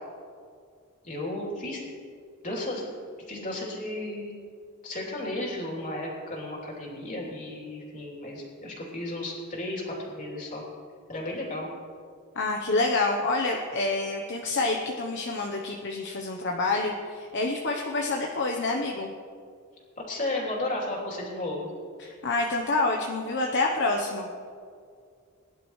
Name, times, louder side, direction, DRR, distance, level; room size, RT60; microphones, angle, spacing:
voice 1, 1.0-1.8 2.4-2.9 3.3-4.4 4.8-10.6 11.1-11.7 20.0-21.7, left 1 dB, 35° left, -3 dB, 3.3 m, -34 dB
voice 2, 12.3-19.1 22.0-24.3, left 3 dB, 55° left, 1 dB, 1.0 m, -27 dB
21.5 x 11.0 x 3.3 m, 2.2 s
head